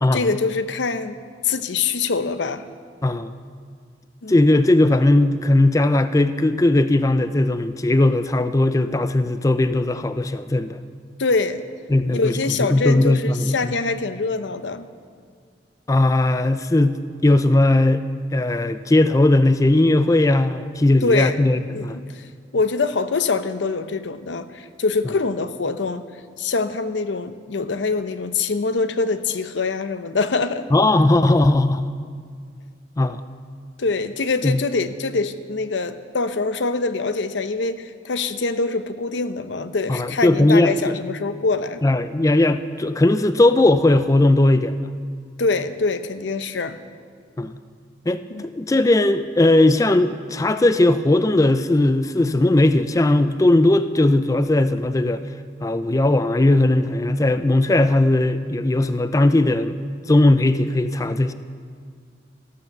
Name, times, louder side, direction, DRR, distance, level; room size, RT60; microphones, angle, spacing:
voice 1, 0.1-1.2 1.4-2.6 4.2-4.4 11.2-11.6 12.1-14.9 21.0-21.4 21.7-22.2 22.5-26.1 26.4-30.7 33.8-41.8 45.4-46.8 48.3-48.5, left 4 dB, 85° left, 11 dB, 0.7 m, -24 dB
voice 2, 3.0-3.3 4.3-10.8 11.9-12.4 12.7-13.7 15.9-18.0 18.3-22.0 30.7-31.9 33.0-33.2 34.4-34.6 39.9-41.0 41.8-44.8 47.4-47.6 48.1-55.2 55.6-59.8 60.1-61.3, left 2 dB, 20° left, 11 dB, 0.4 m, -18 dB
14.5 x 12.0 x 6.7 m, 2.1 s
head